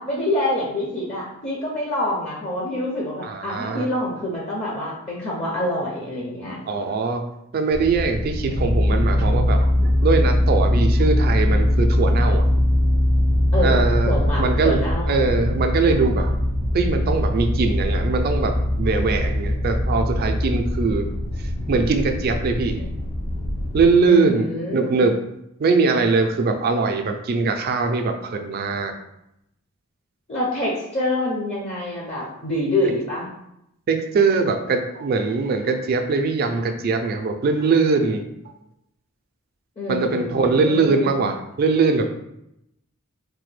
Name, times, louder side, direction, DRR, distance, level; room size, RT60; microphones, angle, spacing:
voice 1, 0.0-6.6 13.5-15.6 24.1-25.0 30.3-33.3 39.8-41.2, left 1 dB, 30° left, -4 dB, 0.5 m, -26 dB
voice 2, 3.2-3.9 6.7-7.2 7.5-12.4 13.6-14.8 15.1-16.3 16.7-18.5 18.8-21.0 21.7-22.9 23.7-25.2 25.6-28.9 33.9-38.3 39.9-42.1, right 4 dB, 45° right, 5 dB, 0.3 m, -21 dB
sound 1, 7.7-23.9, left 1 dB, 75° left, 1.1 m, -21 dB
3.2 x 2.1 x 3.2 m, 0.82 s
head